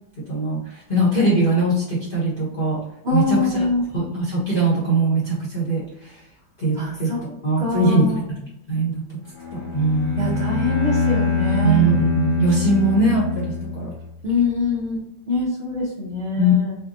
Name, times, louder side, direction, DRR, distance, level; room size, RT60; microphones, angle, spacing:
voice 1, 0.9-2.8 3.1-3.7 3.9-5.8 6.6-7.1 7.4-8.4 8.7-9.0 9.5-10.7 11.6-13.9 16.4-16.5, right 2 dB, 35° left, -6 dB, 1.1 m, -21 dB
voice 2, 3.0-3.8 6.8-7.2 7.6-8.2 10.2-11.9 14.2-16.8, left 3 dB, 45° right, -8 dB, 0.9 m, -24 dB
Bowed string instrument, 9.4-14.2, left 4 dB, 50° left, 0.5 m, -24 dB
4.4 x 2.3 x 2.7 m, 0.81 s
omnidirectional pair, 2.0 m